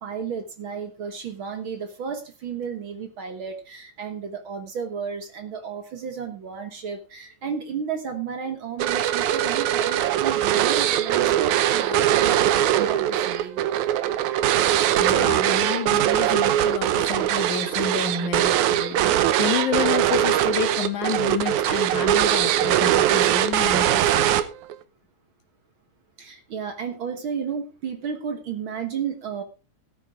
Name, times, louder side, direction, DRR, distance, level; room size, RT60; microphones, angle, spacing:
voice 1, 0.0-13.7 26.2-29.4, right 6 dB, 55° right, 7 dB, 1.8 m, -33 dB
sound 1, 8.8-24.7, right 12 dB, 90° right, 2.2 m, -21 dB
voice 2, 15.0-24.3, left 7 dB, 85° left, 5 dB, 3.4 m, -30 dB
16.5 x 9.1 x 3.6 m, 0.32 s
omnidirectional pair, 3.3 m